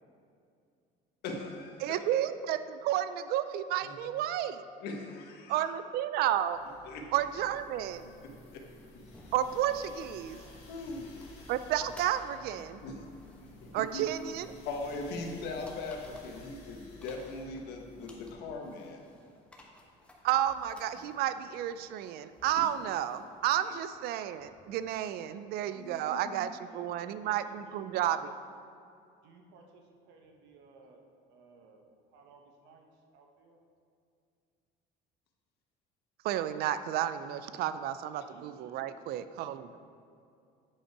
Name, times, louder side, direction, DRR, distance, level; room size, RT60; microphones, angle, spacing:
voice 1, 1.2-2.0 3.8-3.9 4.8-5.7 6.8-7.0 8.2-8.6 10.7-11.2 12.8-13.1 13.6-14.0 14.6-19.0 22.5-22.7 25.7-26.5, left 3 dB, 70° left, 1 dB, 1.3 m, -40 dB
voice 2, 1.8-4.6 5.5-6.6 7.1-8.1 9.3-10.4 11.5-12.8 13.7-14.5 20.2-28.3 36.2-39.7, right 11 dB, 60° right, 12 dB, 0.4 m, -32 dB
sound 1, 6.4-18.3, left 2 dB, 35° left, 1.8 m, -54 dB
sound 2, 9.1-24.9, left 1 dB, 5° left, 1.1 m, -59 dB
voice 3, 26.6-28.3 29.2-31.0 31.3-31.8 32.1-33.6 38.2-39.0, right 4 dB, 75° right, 2 dB, 1.1 m, -57 dB
8.7 x 5.5 x 4.7 m, 2.5 s
cardioid pair, 145°, 18 cm